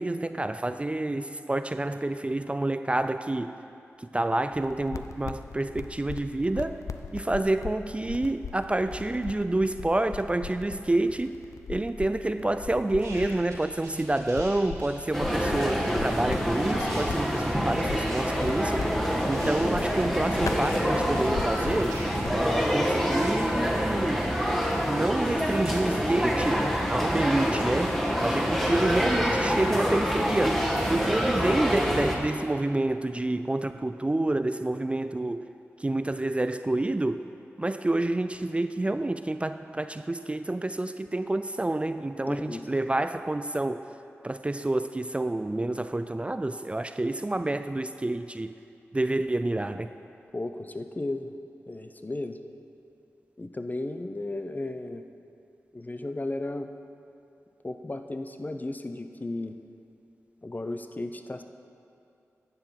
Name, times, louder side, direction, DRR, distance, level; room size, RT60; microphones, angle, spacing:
voice 1, 0.0-3.6 4.0-6.8 7.1-11.4 11.7-18.9 19.3-22.0 22.3-24.3 24.8-27.9 28.2-35.5 35.8-37.2 37.6-43.9 44.2-48.5 48.9-49.9, right 2 dB, 20° right, 10 dB, 0.4 m, -28 dB
sound 1, 4.5-22.4, left 5 dB, 80° left, 0.5 m, -40 dB
sound 2, 13.0-14.5 14.7-22.6, right 2 dB, 90° right, 2.7 m, -46 dB
sound 3, 15.1-32.2, equal, 5° left, 1.7 m, -26 dB
voice 2, 42.3-42.7 50.3-51.3 51.7-52.4 53.4-55.0 55.7-56.7 57.6-59.6 60.4-61.4, left 2 dB, 30° left, 8 dB, 0.7 m, -34 dB
10.5 x 6.9 x 5.7 m, 2.6 s
cardioid pair, 40°, 5 cm